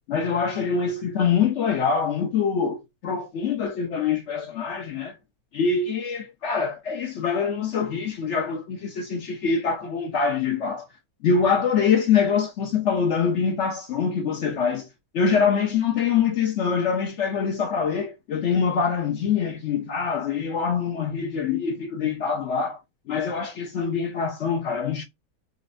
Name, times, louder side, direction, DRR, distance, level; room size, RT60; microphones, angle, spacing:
voice 1, 0.1-5.1 5.5-10.9 11.2-14.9 15.1-22.8 23.1-25.0, left 6 dB, 60° left, 0.9 m, -24 dB
4.1 x 2.2 x 2.5 m
omnidirectional pair, 1.6 m